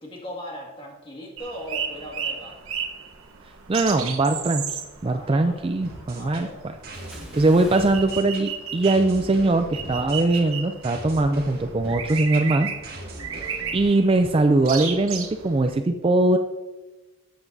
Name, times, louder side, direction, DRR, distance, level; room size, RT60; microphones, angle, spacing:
voice 1, 0.0-2.7 4.9-5.7 6.0-6.6 8.7-9.1 13.1-13.5, equal, 25° left, -1 dB, 2.0 m, -39 dB
sound 1, 1.4-15.8, right 7 dB, 75° right, 1.0 m, -35 dB
voice 2, 3.7-4.7 5.0-6.5 7.4-12.7 13.7-16.4, right 2 dB, 25° right, 7 dB, 0.3 m, -21 dB
sound 2, 5.8-13.8, right 1 dB, 45° right, 1.8 m, -40 dB
Bathtub (filling or washing) / Splash splatter, 6.9-9.3 9.6-9.9, right 1 dB, 5° right, 1.4 m, -48 dB
13.0 x 7.8 x 2.7 m, 1.1 s
head